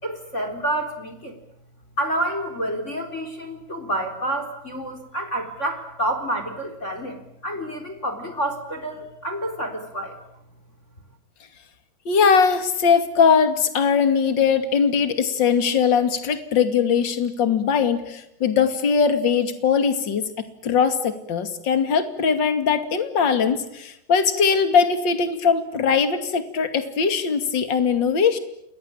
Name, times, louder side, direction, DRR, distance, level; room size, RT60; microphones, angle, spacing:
voice 1, 0.0-1.4 2.0-10.2, right 1 dB, 15° left, 6 dB, 3.6 m, -28 dB
voice 2, 12.1-28.4, left 6 dB, 35° left, 9 dB, 1.9 m, -20 dB
29.0 x 21.5 x 8.7 m, 0.79 s
omnidirectional pair, 5.5 m